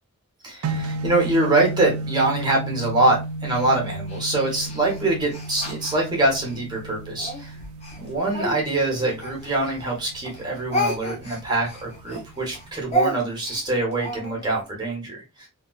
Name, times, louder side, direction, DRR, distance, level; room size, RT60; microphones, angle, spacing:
voice 1, 0.4-7.5 8.0-15.5, right 2 dB, 20° right, -2 dB, 1.1 m, -24 dB
sound 1, 0.6-12.7, right 2 dB, 70° right, 0.4 m, -34 dB
Speech, 3.5-6.6 7.2-10.0 10.2-14.7, equal, 30° left, 0.8 m, -31 dB
3.4 x 2.4 x 2.4 m, 0.27 s
head